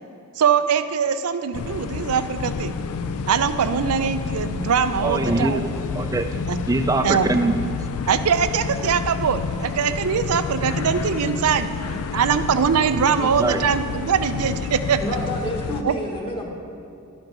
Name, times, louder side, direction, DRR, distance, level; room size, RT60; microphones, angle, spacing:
voice 1, 0.4-2.7 3.3-5.6 6.5-6.6 7.0-7.3 8.1-11.7 12.1-15.0 15.8-15.9, right 7 dB, 90° right, 11 dB, 0.5 m, -22 dB
sound 1, 1.5-15.8, left 5 dB, 90° left, 0.4 m, -29 dB
voice 2, 5.0-6.3 6.7-7.5 13.2-13.6, right 2 dB, 15° right, 8 dB, 0.4 m, -23 dB
voice 3, 15.0-16.5, left 1 dB, 25° left, -1 dB, 1.3 m, -28 dB
11.5 x 5.2 x 5.9 m, 2.5 s
head